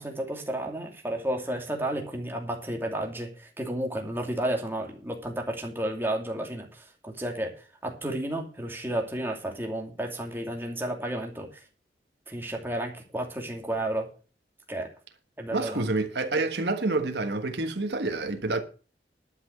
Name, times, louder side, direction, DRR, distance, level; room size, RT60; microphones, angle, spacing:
voice 1, 0.0-11.6 12.3-14.1 14.7-14.9 15.4-15.9, right 1 dB, 15° right, 2.6 m, -32 dB
voice 2, 15.5-18.6, right 2 dB, 75° right, 1.5 m, -28 dB
12.0 x 6.0 x 7.9 m
head